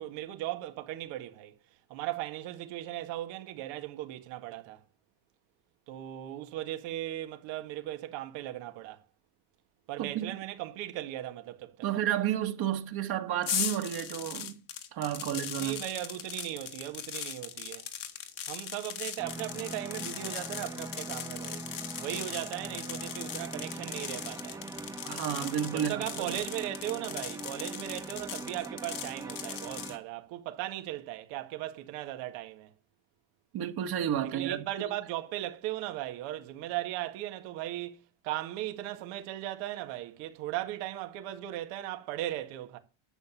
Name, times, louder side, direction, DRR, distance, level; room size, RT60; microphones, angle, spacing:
voice 1, 0.0-1.5 1.9-4.8 5.9-9.0 9.9-11.9 15.6-17.9 18.5-21.6 22.0-24.6 25.7-32.7 34.2-42.8, right 14 dB, 85° right, 2.0 m, -37 dB
voice 2, 10.0-10.4 11.8-14.6 14.9-15.8 25.0-26.4 33.5-34.9, right 10 dB, 55° right, 1.8 m, -32 dB
sound 1, 13.4-30.0, left 9 dB, 45° left, 1.6 m, -39 dB
sound 2, 19.2-30.0, right 2 dB, 10° right, 0.5 m, -42 dB
11.5 x 7.1 x 7.3 m
cardioid pair, 120°, 46 cm